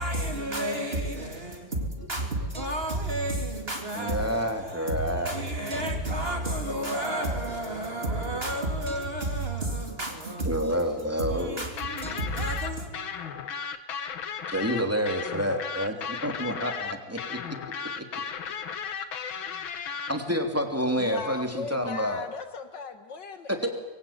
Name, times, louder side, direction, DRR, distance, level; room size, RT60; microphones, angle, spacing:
voice 1, 0.0-10.8 11.2-12.9, right 1 dB, 30° right, 3.8 m, -31 dB
voice 2, 3.9-5.4 10.4-11.6 14.5-17.4 18.0-18.1 20.1-22.2 23.6-23.7, equal, 5° right, 2.9 m, -28 dB
sound 1, 11.8-20.1, left 7 dB, 85° left, 2.2 m, -35 dB
voice 3, 21.0-23.8, left 5 dB, 65° left, 2.2 m, -38 dB
27.0 x 22.5 x 8.9 m
omnidirectional pair, 2.1 m